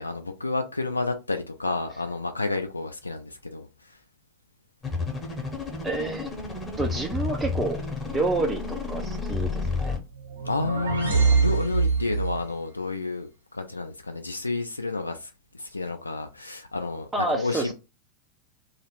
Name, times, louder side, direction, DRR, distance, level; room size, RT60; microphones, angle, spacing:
voice 1, 0.0-4.0 10.4-17.7, left 3 dB, 80° left, 0.3 m, -30 dB
sound 1, 4.8-10.0, left 4 dB, 15° left, 0.8 m, -31 dB
voice 2, 5.8-6.3 6.8-7.8 8.1-9.9 17.1-17.7, right 2 dB, 10° right, 0.3 m, -28 dB
sound 2, 10.1-12.5, right 5 dB, 75° right, 1.0 m, -24 dB
2.2 x 2.0 x 2.9 m
figure-of-eight pair, 90°, 0 cm